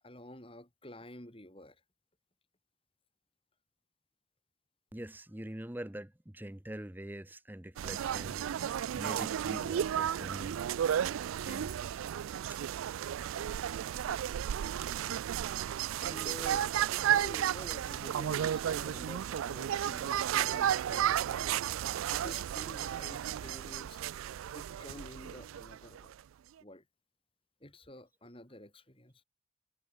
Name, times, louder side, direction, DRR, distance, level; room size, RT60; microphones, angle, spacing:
voice 1, 0.0-1.8 15.1-15.2 16.0-16.7 17.0-21.6 22.1-24.1 24.5-26.2 26.6-26.8 27.6-29.1, left 1 dB, 25° left, 4.4 m, -50 dB
voice 2, 4.9-10.6 11.4-12.0 12.5-12.6, right 1 dB, 10° right, 0.8 m, -44 dB
sound 1, 7.8-26.2, right 10 dB, 85° right, 0.3 m, -33 dB
head